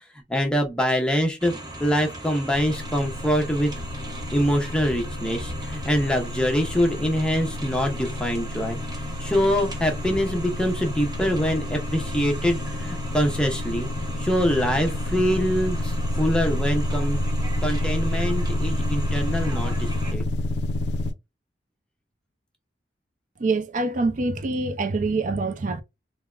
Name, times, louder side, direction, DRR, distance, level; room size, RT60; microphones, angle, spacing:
voice 1, 0.3-1.5 1.8-3.7 4.3-17.2 17.6-20.2, equal, 5° left, 0.7 m, -24 dB
sound 1, 1.4-20.1, right 1 dB, 25° right, 0.8 m, -37 dB
sound 2, 2.5-21.1, left 1 dB, 75° left, 0.4 m, -29 dB
voice 2, 23.4-25.8, right 3 dB, 45° right, 0.4 m, -25 dB
3.5 x 2.1 x 2.3 m
head